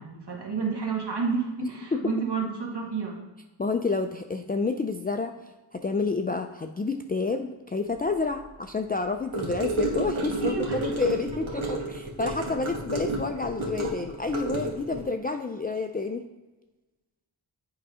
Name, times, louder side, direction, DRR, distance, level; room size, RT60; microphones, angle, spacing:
voice 1, 0.0-3.2 10.4-11.0 11.3-11.4, right 5 dB, 55° right, 0 dB, 1.9 m, -30 dB
voice 2, 1.6-2.0 3.6-5.3 5.7-16.2, left 4 dB, 20° left, 5 dB, 0.4 m, -29 dB
Gurgling / Car passing by / Sink (filling or washing), 9.3-15.0, right 2 dB, 75° right, 1.6 m, -31 dB
7.7 x 3.8 x 4.9 m, 1.1 s
wide cardioid pair, 65°, 47 cm